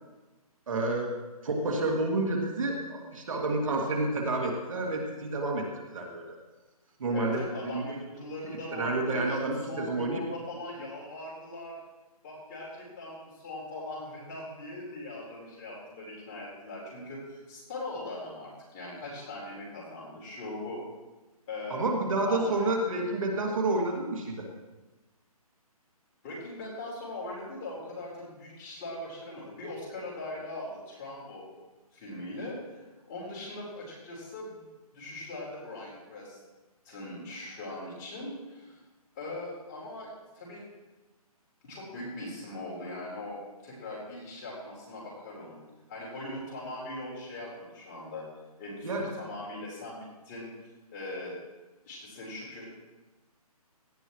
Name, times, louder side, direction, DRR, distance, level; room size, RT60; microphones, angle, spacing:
voice 1, 0.7-1.1 1.4-5.6 5.9-6.2 7.0-7.8 8.7-10.2 21.7-24.5 48.8-49.1, right 2 dB, 60° right, 0 dB, 2.5 m, -29 dB
voice 2, 7.1-9.4 9.7-11.8 12.2-20.8 21.5-21.9 22.3-22.7 26.2-31.5 31.9-34.7 34.9-36.4 36.8-38.8 39.1-40.1 40.3-40.6 41.6-45.6 45.9-48.3 48.6-51.4 51.8-52.6, left 2 dB, 20° left, -5 dB, 4.2 m, -40 dB
17.5 x 11.5 x 3.2 m, 1.1 s
hypercardioid pair, 165°, 19 cm